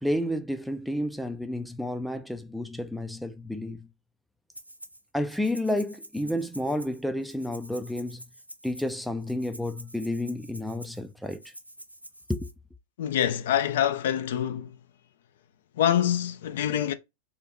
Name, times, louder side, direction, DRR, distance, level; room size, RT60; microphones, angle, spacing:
voice 1, 0.0-3.9 5.1-8.2 8.6-11.5 12.3-12.5, left 1 dB, ahead, 0.4 m, -31 dB
Rattle (instrument), 4.5-5.0 5.3-12.5, right 1 dB, 90° right, 0.6 m, -47 dB
voice 2, 13.0-14.8 15.8-16.9, left 10 dB, 60° left, 0.5 m, -25 dB
3.7 x 2.8 x 3.5 m
figure-of-eight pair, 90°, 0 cm